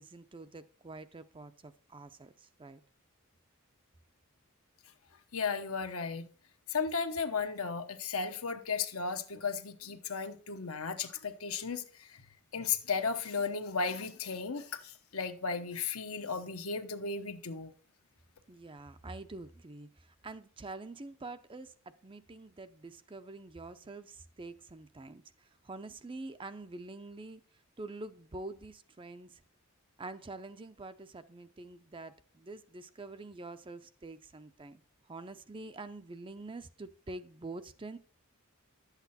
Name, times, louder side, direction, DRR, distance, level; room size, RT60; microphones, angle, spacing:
voice 1, 0.0-2.8 18.5-21.7 22.0-27.4 27.8-29.4 30.0-34.8 35.1-38.0, right 2 dB, 25° right, 0.6 m, -46 dB
voice 2, 5.3-6.3 6.7-11.8 12.5-17.7, left 5 dB, 75° left, 1.0 m, -35 dB
11.5 x 8.2 x 4.2 m
head